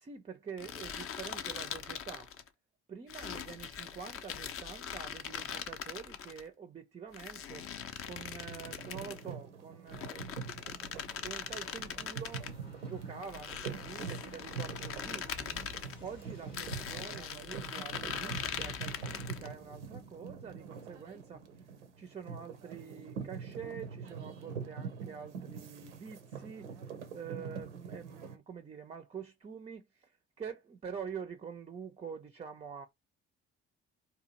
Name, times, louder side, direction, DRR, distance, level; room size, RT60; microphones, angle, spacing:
voice 1, 0.0-2.3 2.9-7.7 8.0-15.6 16.0-21.7 22.0-32.9, right 6 dB, 20° right, 0.4 m, -46 dB
sound 1, 0.6-2.5 3.1-6.4 7.1-9.3 9.9-12.5 13.2-16.0 16.5-19.5, left 8 dB, 40° left, 0.5 m, -41 dB
sound 2, 8.4-28.4, right 6 dB, 85° right, 0.5 m, -44 dB
sound 3, 10.4-23.8 24.1-24.2, left 3 dB, 85° left, 0.9 m, -56 dB
2.6 x 2.3 x 2.8 m
figure-of-eight pair, 45°, 34 cm